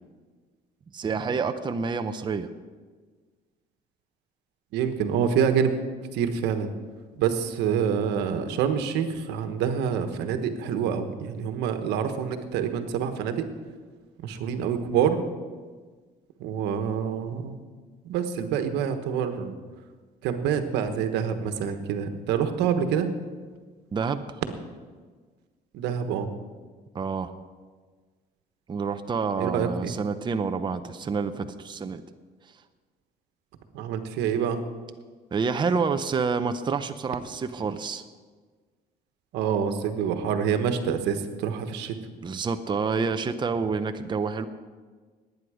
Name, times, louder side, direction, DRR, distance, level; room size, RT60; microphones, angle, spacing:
voice 1, 0.9-2.5 23.9-24.4 26.9-27.3 28.7-32.0 35.3-38.0 42.2-44.5, right 5 dB, 25° right, 8 dB, 0.7 m, -28 dB
voice 2, 4.7-5.7 6.1-6.7 7.2-13.4 14.2-15.2 16.4-17.6 18.0-19.5 20.2-23.1 25.7-26.3 29.4-29.9 33.7-34.6 39.3-41.9, right 7 dB, 90° right, 7 dB, 1.3 m, -26 dB
19.5 x 9.4 x 4.9 m, 1.5 s
cardioid pair, 110°, 17 cm